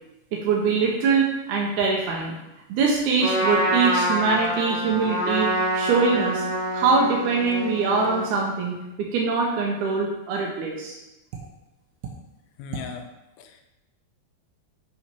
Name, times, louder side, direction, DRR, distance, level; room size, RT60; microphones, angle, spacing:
voice 1, 0.3-2.3 2.7-5.5 5.7-6.4 6.7-11.0 12.7-12.8, right 4 dB, 75° right, -2 dB, 1.9 m, -23 dB
Trumpet, 3.2-8.4, right 1 dB, 30° left, 2.7 m, -26 dB
voice 2, 12.6-13.1 13.4-13.6, left 7 dB, 85° left, 5 dB, 2.4 m, -37 dB
5.9 x 5.7 x 4.4 m, 0.96 s
omnidirectional pair, 4.3 m